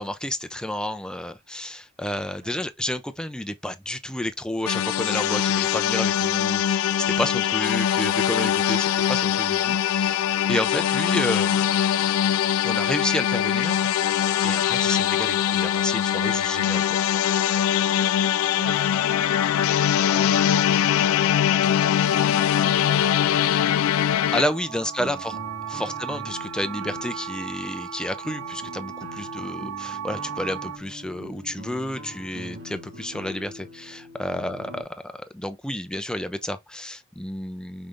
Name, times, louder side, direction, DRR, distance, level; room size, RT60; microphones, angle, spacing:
voice 1, 0.0-11.7 12.6-13.9 14.4-17.4 24.3-25.4 25.7-37.9, left 1 dB, 5° left, 0.5 m, -31 dB
sound 1, 4.7-24.4, left 10 dB, 85° left, 0.3 m, -22 dB
voice 2, 17.9-23.6 25.0-25.3 25.8-26.0 29.4-29.6 34.4-34.5, right 2 dB, 45° right, 1.0 m, -47 dB
sound 2, 18.1-30.8, right 9 dB, 85° right, 0.5 m, -38 dB
sound 3, 24.3-34.8, equal, 60° right, 1.4 m, -42 dB
5.3 x 3.2 x 2.6 m
head